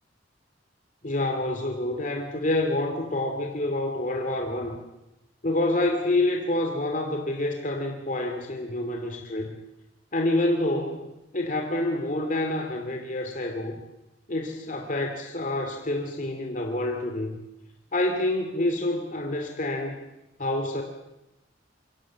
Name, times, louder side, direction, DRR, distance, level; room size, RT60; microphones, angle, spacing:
voice 1, 1.0-4.8 5.4-9.6 10.1-11.1 11.3-13.8 14.3-17.4 17.9-20.0 20.4-20.8, left 1 dB, 45° left, 3 dB, 2.5 m, -27 dB
26.5 x 23.5 x 7.4 m, 0.95 s
head